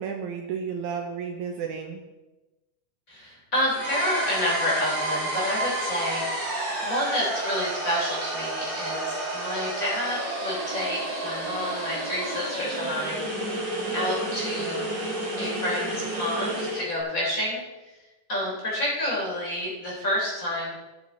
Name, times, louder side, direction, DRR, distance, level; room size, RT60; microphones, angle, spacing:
voice 1, 0.0-2.0, right 6 dB, 75° right, 3 dB, 2.0 m, -32 dB
voice 2, 3.1-13.6 13.9-17.6 17.8-17.9 18.3-20.7, left 1 dB, 25° left, -5 dB, 3.4 m, -29 dB
sound 1, 3.7-16.9, right 1 dB, 30° right, 2.7 m, -31 dB
15.5 x 6.9 x 3.9 m, 1.1 s
omnidirectional pair, 3.8 m